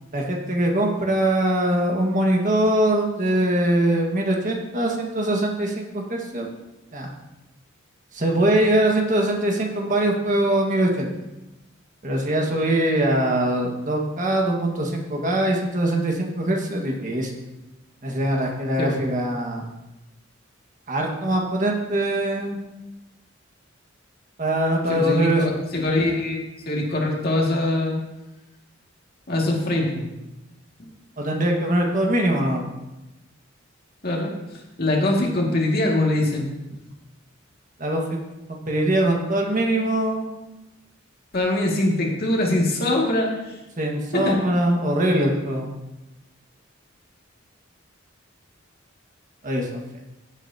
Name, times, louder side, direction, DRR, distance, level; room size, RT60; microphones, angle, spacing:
voice 1, 0.1-6.5 6.9-7.1 8.1-11.1 12.0-17.3 18.0-19.7 20.9-22.6 24.4-25.4 31.2-32.6 37.8-38.2 38.5-40.3 43.8-45.7 49.4-49.8, right 1 dB, 40° right, 0 dB, 1.7 m, -22 dB
voice 2, 24.9-25.3 25.7-28.0 29.3-30.1 34.0-34.3 34.8-36.5 41.3-43.5 44.1-44.4, left 1 dB, 50° left, -1 dB, 2.1 m, -22 dB
15.5 x 8.1 x 2.9 m, 0.99 s
head